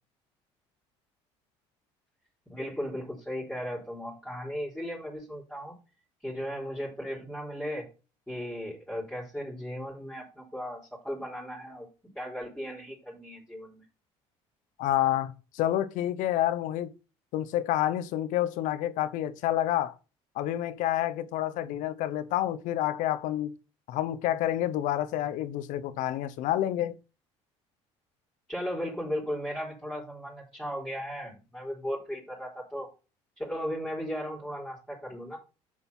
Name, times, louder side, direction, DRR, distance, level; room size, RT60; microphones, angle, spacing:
voice 1, 2.5-5.8 6.2-7.9 8.3-11.9 12.1-13.8 28.5-32.9 33.4-35.4, equal, 5° left, 4.0 m, -36 dB
voice 2, 14.8-16.9 17.3-19.9 20.3-23.6 23.9-27.0, left 12 dB, 75° left, 1.0 m, -28 dB
7.1 x 6.7 x 5.6 m
supercardioid pair, 80°, 13 cm